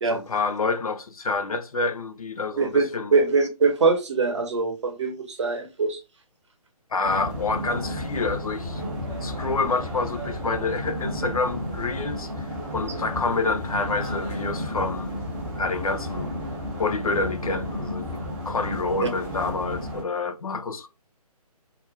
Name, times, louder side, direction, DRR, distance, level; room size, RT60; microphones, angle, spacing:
voice 1, 0.1-3.1 6.9-8.8 9.2-12.5 12.7-15.1 15.6-16.4 16.8-20.9, left 3 dB, 65° left, 0.5 m, -28 dB
voice 2, 2.6-6.0, right 4 dB, 45° right, 0.7 m, -23 dB
sound 1, 7.0-20.0, equal, 5° right, 0.4 m, -32 dB
2.4 x 2.2 x 3.2 m
figure-of-eight pair, 140°, 20 cm